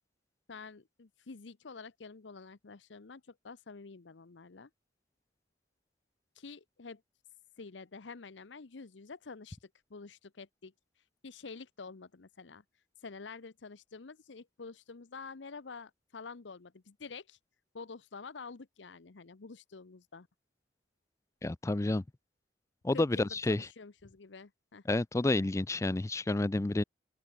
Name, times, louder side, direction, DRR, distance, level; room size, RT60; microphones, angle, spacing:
voice 1, 0.5-4.7 6.3-7.0 7.6-12.6 13.0-17.4 17.7-20.3 22.9-24.9, left 4 dB, 85° left, 0.8 m, -48 dB
voice 2, 21.4-22.0 22.8-23.7 24.9-26.8, left 2 dB, 15° left, 0.4 m, -30 dB
open air
head